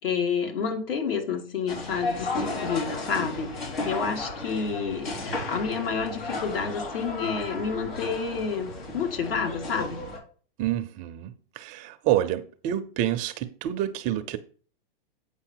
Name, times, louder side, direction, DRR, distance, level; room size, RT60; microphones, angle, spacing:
voice 1, 0.0-10.0, left 5 dB, 70° left, 2.5 m, -29 dB
sound 1, 1.7-10.2, left 2 dB, 85° left, 4.6 m, -34 dB
voice 2, 10.6-14.4, right 12 dB, 25° right, 0.5 m, -28 dB
8.7 x 5.4 x 4.6 m
hypercardioid pair, 140°, 30 cm